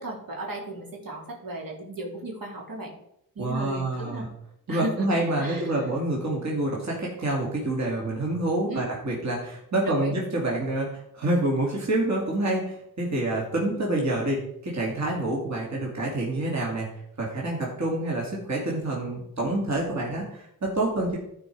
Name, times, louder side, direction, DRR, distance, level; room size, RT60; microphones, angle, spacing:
voice 1, 0.0-2.9 3.3-4.3 4.7-5.8 8.7-8.9 9.8-10.2, right 1 dB, 75° right, -2 dB, 2.9 m, -35 dB
voice 2, 3.4-4.3 4.7-16.9 17.2-21.2, right 2 dB, 50° right, -3 dB, 2.4 m, -27 dB
13.5 x 4.7 x 4.6 m, 0.75 s
wide cardioid pair, 100°, 35 cm